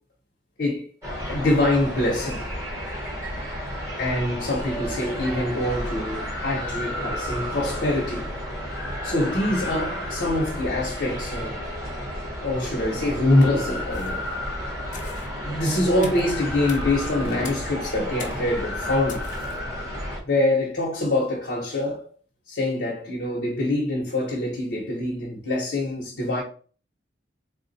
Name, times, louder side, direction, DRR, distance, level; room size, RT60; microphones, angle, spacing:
sound 1, 1.0-20.2, equal, 15° right, 1.6 m, -32 dB
voice 1, 1.3-2.5 4.0-8.3 9.0-11.6 12.4-14.3 15.4-19.3 20.2-22.1 22.5-26.4, left 1 dB, 70° left, 1.1 m, -24 dB
sound 2, 13.9-14.3 14.9-15.3 16.0-16.3 16.7-16.8 17.4-17.7 18.2-18.5 19.1-19.6, left 6 dB, 45° left, 0.7 m, -41 dB
3.7 x 2.4 x 4.1 m
head